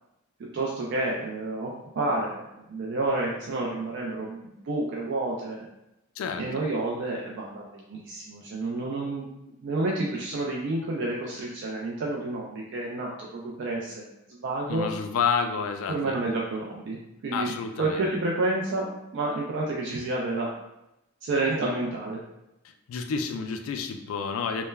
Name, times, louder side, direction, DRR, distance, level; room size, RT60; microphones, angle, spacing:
voice 1, 0.5-5.7 6.4-9.3 9.6-14.9 15.9-17.0 17.2-17.5 17.8-20.5 21.2-22.2, right 2 dB, 60° right, -3 dB, 0.3 m, -30 dB
voice 2, 14.7-16.3 17.3-18.0 22.9-24.7, left 5 dB, 75° left, 7 dB, 0.3 m, -29 dB
3.1 x 2.1 x 2.2 m, 0.88 s
head